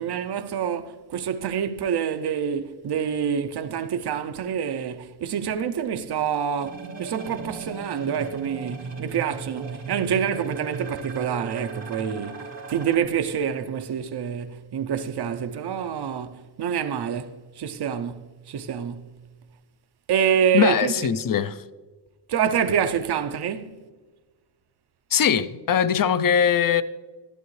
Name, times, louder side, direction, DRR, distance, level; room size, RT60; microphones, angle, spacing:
voice 1, 0.0-19.2 20.1-21.1 22.3-23.8, right 8 dB, 65° right, 0.6 m, -27 dB
sound 1, 6.6-13.0, right 4 dB, 85° right, 1.6 m, -37 dB
voice 2, 20.5-21.6 25.1-26.8, left 8 dB, 50° left, 0.5 m, -21 dB
12.0 x 12.0 x 3.2 m
wide cardioid pair, 105°, 43 cm